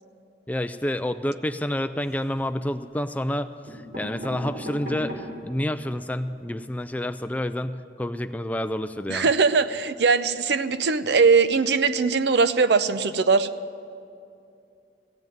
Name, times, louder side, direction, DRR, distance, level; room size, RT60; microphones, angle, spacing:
voice 1, 0.5-9.3, left 1 dB, 10° left, 10 dB, 0.3 m, -29 dB
sound 1, 1.9-2.5 3.3-3.4 3.7-5.5 6.0-6.1 6.2-6.3 6.6-6.8, equal, 55° right, 4.4 m, -37 dB
voice 2, 9.1-13.5, right 4 dB, 75° right, 12 dB, 0.6 m, -20 dB
16.0 x 7.7 x 9.2 m, 2.5 s
head